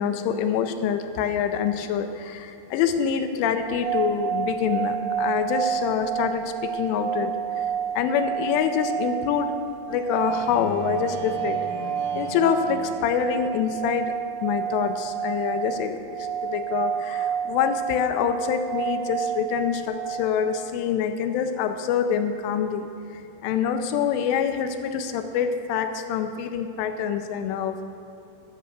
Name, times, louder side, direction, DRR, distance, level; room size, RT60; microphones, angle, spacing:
voice 1, 0.0-7.3 8.0-9.5 9.9-11.6 12.1-14.1 14.4-22.9 23.4-27.8, left 8 dB, 80° left, 7 dB, 3.1 m, -26 dB
sound 1, 3.5-20.7, right 9 dB, 65° right, 2.9 m, -30 dB
sound 2, 10.1-13.4, right 1 dB, 80° right, 6.0 m, -38 dB
13.0 x 7.3 x 7.9 m, 2.7 s
omnidirectional pair, 5.7 m